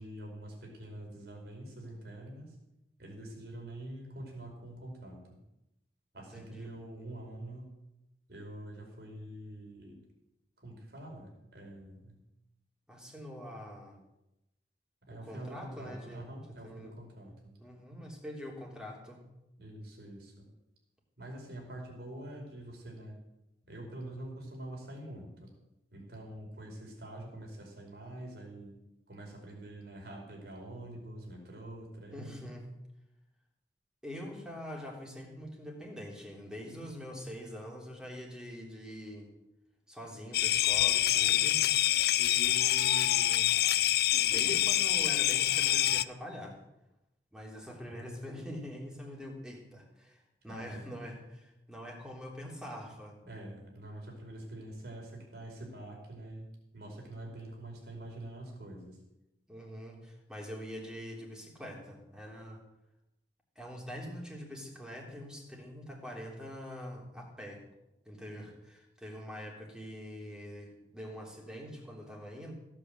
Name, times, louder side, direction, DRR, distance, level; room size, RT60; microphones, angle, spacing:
voice 1, 0.0-2.5 3.0-5.4 6.1-7.7 8.3-10.0 10.6-12.2 15.0-17.5 19.6-20.5 21.2-23.2 23.7-25.5 25.9-28.7 29.1-32.5 50.4-50.9 53.2-56.5 56.7-59.0, right 1 dB, 60° right, 0 dB, 5.0 m, -45 dB
voice 2, 6.2-6.7 12.9-14.0 15.1-16.2 16.6-16.9 17.6-19.2 32.1-32.6 34.0-39.3 39.9-41.6 42.2-43.5 44.2-46.5 47.3-53.2 59.5-62.6 63.5-67.6 68.0-72.5, equal, 5° right, -1 dB, 3.4 m, -44 dB
sound 1, 40.3-46.0, left 13 dB, 60° left, 0.5 m, -26 dB
16.5 x 8.6 x 7.9 m, 0.90 s
head